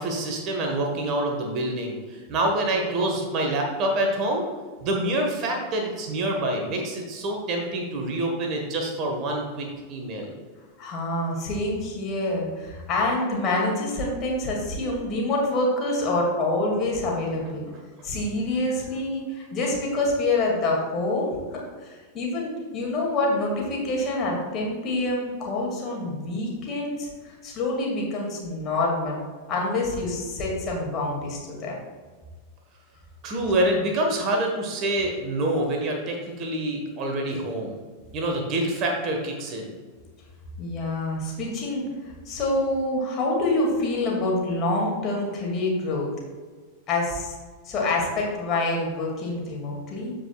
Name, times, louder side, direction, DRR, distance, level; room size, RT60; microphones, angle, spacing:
voice 1, 0.0-4.4 4.8-10.3 33.2-37.8 38.1-39.7, right 1 dB, 35° right, 1 dB, 1.5 m, -26 dB
voice 2, 10.8-17.7 18.0-29.2 29.5-31.7 40.6-46.1 46.9-47.3 47.6-50.1, left 2 dB, 30° left, -2 dB, 2.4 m, -26 dB
14.5 x 5.1 x 2.4 m, 1.5 s
figure-of-eight pair, 90°, 0 cm